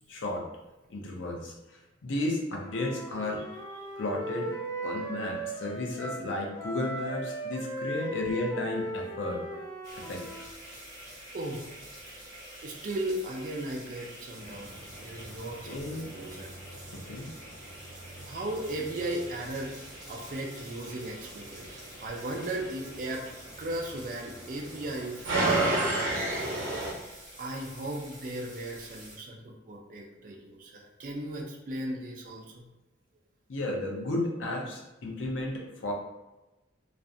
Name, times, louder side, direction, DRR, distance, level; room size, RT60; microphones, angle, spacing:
voice 1, 0.1-0.4 0.9-1.5 2.0-3.4 4.0-4.5 4.8-9.4 10.0-10.2 15.7-16.2 16.9-17.3 33.5-35.9, left 2 dB, 75° left, 0 dB, 0.5 m, -33 dB
Wind instrument woodwind instrument, 2.6-6.3 6.6-10.5, right 1 dB, 15° left, 0.9 m, -37 dB
sound 1, 9.8-29.2, right 1 dB, 20° right, 0.7 m, -48 dB
voice 2, 11.3-11.8 12.1-12.3 12.6-14.7 15.0-16.5 18.2-23.2 23.6-25.6 26.0-26.2 27.4-32.6, right 1 dB, 45° right, 0 dB, 0.3 m, -37 dB
sound 2, 14.4-26.9, right 2 dB, 80° right, 0.7 m, -35 dB
2.4 x 2.1 x 2.6 m, 1.0 s
head